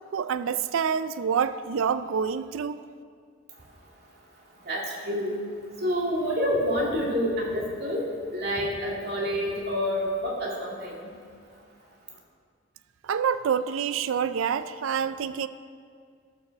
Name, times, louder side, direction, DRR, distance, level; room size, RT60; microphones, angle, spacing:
voice 1, 0.1-2.8 13.0-15.5, right 7 dB, 75° right, 13 dB, 0.4 m, -27 dB
voice 2, 4.6-5.4 5.8-11.1, equal, 50° right, -3 dB, 2.5 m, -28 dB
14.0 x 6.0 x 6.6 m, 2.1 s
head